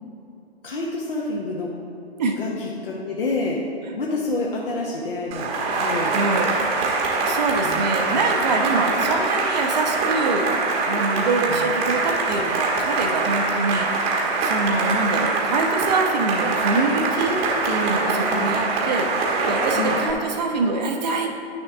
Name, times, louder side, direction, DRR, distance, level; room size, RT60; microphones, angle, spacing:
voice 1, 0.6-1.7 2.4-3.6 4.0-5.5 5.8-6.2 7.6-8.2 11.5-11.7 18.2-18.5 19.8-19.9, left 3 dB, 60° left, -4 dB, 1.2 m, -28 dB
Cheering / Applause, 5.3-20.1, right 3 dB, 20° right, 1.2 m, -23 dB
voice 2, 6.1-6.7 7.2-10.5 10.8-21.3, right 3 dB, 40° right, 3 dB, 0.9 m, -25 dB
10.0 x 6.5 x 3.6 m, 2.8 s
figure-of-eight pair, 125°, 32 cm